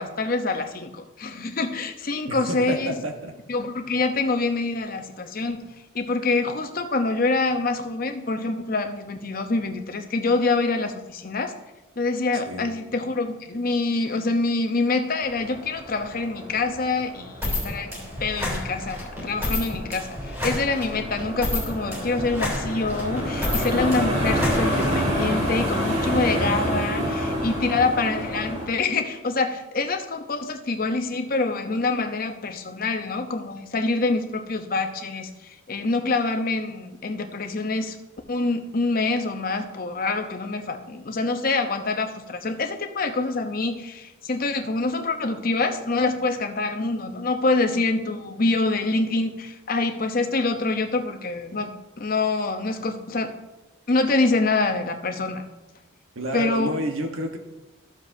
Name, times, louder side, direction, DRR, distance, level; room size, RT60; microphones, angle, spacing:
voice 1, 0.0-2.9 3.5-5.7 5.9-11.5 12.0-17.9 18.2-38.0 38.3-53.4 53.9-55.4 56.3-56.8, left 3 dB, 45° left, 6 dB, 0.7 m, -26 dB
voice 2, 2.3-3.3 12.5-12.7 56.1-57.4, right 1 dB, 75° right, 4 dB, 1.1 m, -29 dB
sound 1, 15.2-28.7, equal, 30° right, 2.3 m, -28 dB
sound 2, 17.4-25.3, left 1 dB, 15° right, 3.1 m, -30 dB
13.5 x 7.3 x 2.7 m, 1.0 s
head